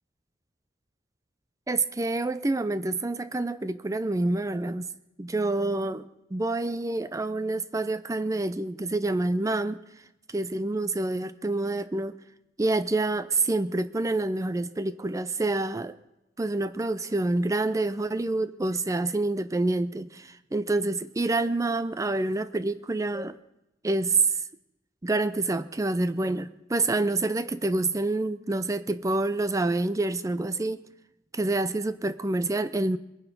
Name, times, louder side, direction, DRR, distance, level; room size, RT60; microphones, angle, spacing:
voice 1, 1.7-4.9 5.2-9.8 10.3-12.2 12.6-16.0 16.4-23.4 23.8-24.4 25.0-30.8 31.3-33.0, right 2 dB, 20° right, 14 dB, 0.5 m, -27 dB
22.5 x 10.5 x 5.3 m, 0.90 s
head